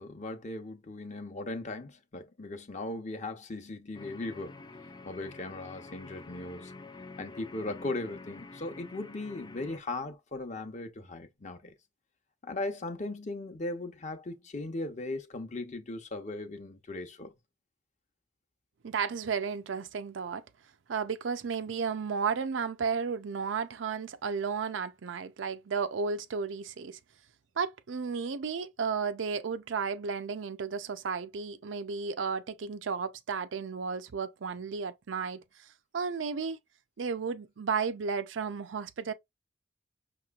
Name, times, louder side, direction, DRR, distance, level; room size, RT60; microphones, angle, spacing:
voice 1, 0.0-4.6 5.0-6.7 7.2-11.7 12.4-17.3, left 2 dB, 40° left, 0.8 m, -38 dB
sound 1, 3.9-9.8, left 3 dB, 25° left, 0.4 m, -48 dB
voice 2, 18.8-20.4 20.9-27.0 27.6-35.7 35.9-36.6 37.0-39.1, right 5 dB, 85° right, 0.5 m, -33 dB
5.8 x 3.0 x 2.4 m
head